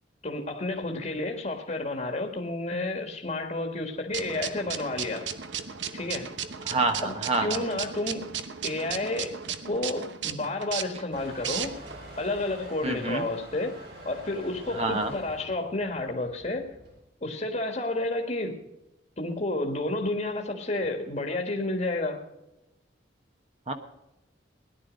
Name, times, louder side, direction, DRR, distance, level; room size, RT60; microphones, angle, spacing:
voice 1, 0.2-5.3 5.9-6.3 7.0-7.1 7.4-8.3 8.6-9.4 9.6-11.7 12.2-13.7 14.0-16.6 17.2-18.5 19.2-22.2, left 2 dB, 40° left, 1.6 m, -30 dB
sound 1, 4.1-12.0, right 8 dB, 75° right, 1.0 m, -35 dB
voice 2, 6.6-7.6 12.8-13.3 14.7-15.1 23.7-23.8, right 3 dB, 35° right, 1.2 m, -27 dB
Motor vehicle (road) / Engine starting / Accelerating revving vroom, 11.1-17.0, right 1 dB, 60° right, 5.0 m, -46 dB
18.0 x 11.0 x 5.1 m
head